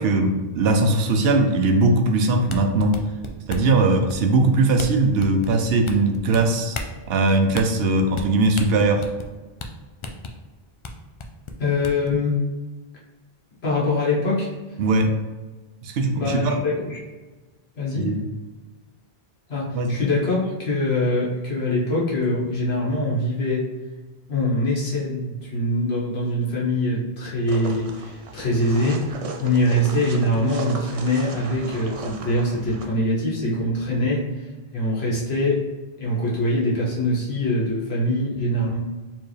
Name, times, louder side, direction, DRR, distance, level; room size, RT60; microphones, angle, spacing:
voice 1, 0.0-3.0 3.5-6.8 7.1-9.1 14.8-15.1 15.8-16.6 18.0-18.2 19.7-20.0, right 2 dB, 75° right, 5 dB, 0.8 m, -20 dB
sound 1, 2.5-3.7 4.1-4.4 4.8-4.9 5.2-6.4 6.7-6.9 7.5-7.7 8.1-8.3 8.6-9.3 9.6-9.7 10.0-10.3 10.8-10.9 11.2-12.1, left 3 dB, 50° left, 0.4 m, -33 dB
voice 2, 11.6-12.4 13.6-14.5 16.1-17.0 17.7-18.1 19.5-23.7 24.3-35.7 36.0-38.8, left 1 dB, 75° left, -5 dB, 1.6 m, -23 dB
sound 2, 27.5-32.8, right 3 dB, 50° right, 0.5 m, -36 dB
4.4 x 3.3 x 3.3 m, 1.2 s
omnidirectional pair, 1.1 m